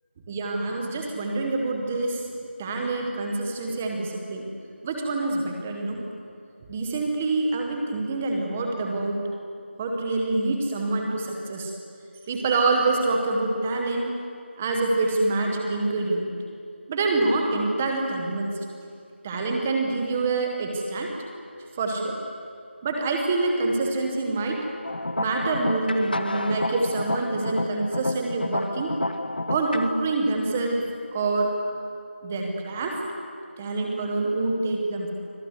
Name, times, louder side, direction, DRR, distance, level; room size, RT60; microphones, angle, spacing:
voice 1, 0.3-2.2 2.6-4.5 4.8-6.0 6.7-9.2 9.8-11.7 12.3-14.1 14.6-16.3 16.9-18.5 19.2-21.1 21.8-22.2 22.8-24.6 25.2-28.9 29.5-30.9 31.1-31.5 32.2-33.0 33.6-35.1, right 2 dB, 5° right, 2 dB, 1.0 m, -26 dB
sound 1, 24.8-29.9, left 2 dB, 50° left, 1.1 m, -30 dB
27.5 x 25.0 x 7.8 m, 2.4 s
figure-of-eight pair, 180°, 7 cm